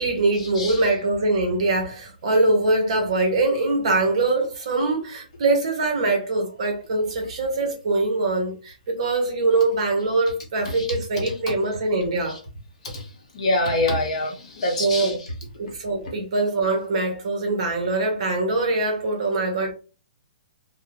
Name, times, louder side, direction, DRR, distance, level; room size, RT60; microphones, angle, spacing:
voice 1, 0.0-12.4 14.8-15.2 15.6-19.7, right 2 dB, 40° right, 0.8 m, -23 dB
voice 2, 13.3-15.2, left 2 dB, 45° left, 0.8 m, -25 dB
2.5 x 2.1 x 2.8 m
hypercardioid pair, 180°, 5 cm